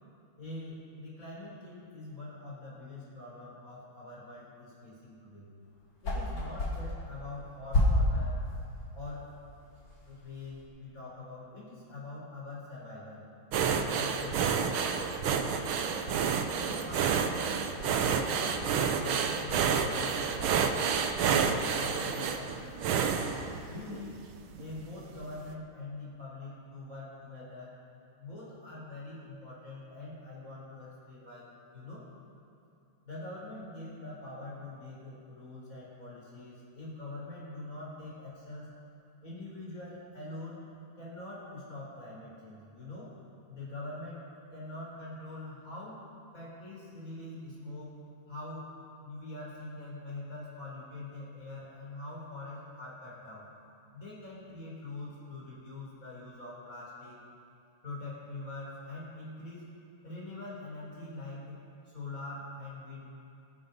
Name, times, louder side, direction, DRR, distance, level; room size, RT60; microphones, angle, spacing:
voice 1, 0.4-5.5 6.0-8.4 8.9-9.3 10.0-13.2 13.6-14.9 15.2-16.0 16.5-17.4 17.8-23.2 23.7-24.1 24.6-27.7 28.2-31.5 31.7-32.0 33.0-38.7 39.2-40.6 41.0-43.1 43.5-44.2 44.5-46.0 46.3-48.0 48.3-48.7 49.0-53.4 53.9-57.2 57.8-59.7 60.0-61.6 61.9-63.0, left 2 dB, 40° left, -6 dB, 4.8 m, -44 dB
sound 1, 5.6-10.7, left 1 dB, 65° left, 3.5 m, -32 dB
sound 2, 13.5-24.1 24.6-24.8 25.2-25.3, right 6 dB, 75° right, 1.7 m, -29 dB
23.5 x 10.5 x 5.4 m, 2.7 s
omnidirectional pair, 2.3 m